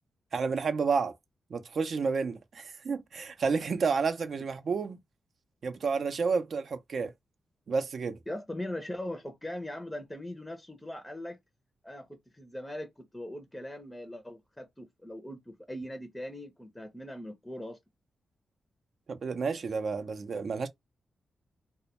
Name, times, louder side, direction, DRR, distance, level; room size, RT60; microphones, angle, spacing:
voice 1, 0.3-1.1 1.5-5.0 5.6-7.1 7.7-8.2 19.1-20.7, right 5 dB, 60° right, 0.4 m, -30 dB
voice 2, 8.3-11.4 11.8-17.8, left 1 dB, 10° left, 0.5 m, -40 dB
2.1 x 2.1 x 2.8 m
cardioid pair, 80°, 0 cm